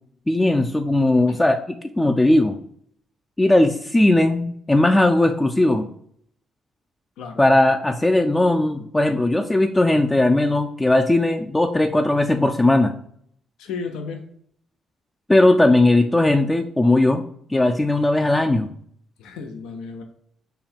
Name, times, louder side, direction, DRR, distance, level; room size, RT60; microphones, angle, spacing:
voice 1, 0.3-1.6 2.0-2.6 3.4-5.9 7.4-12.9 15.3-17.2 17.5-18.7, left 2 dB, 15° left, 5 dB, 0.3 m, -18 dB
voice 2, 13.6-14.2 19.2-20.0, left 4 dB, 90° left, 5 dB, 0.6 m, -33 dB
5.5 x 2.2 x 4.3 m, 0.64 s
cardioid pair, 90°, 0 cm